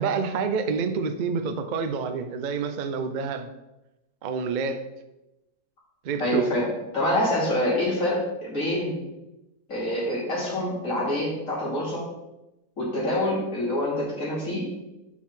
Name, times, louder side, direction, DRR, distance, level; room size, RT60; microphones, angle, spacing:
voice 1, 0.0-3.5 4.2-4.9 6.0-6.5, right 5 dB, 65° right, 8 dB, 0.4 m, -28 dB
voice 2, 6.2-6.7 6.9-9.0 9.7-12.0 12.8-14.6, left 1 dB, 55° left, -7 dB, 3.2 m, -26 dB
7.4 x 6.1 x 3.7 m, 0.95 s
omnidirectional pair, 1.6 m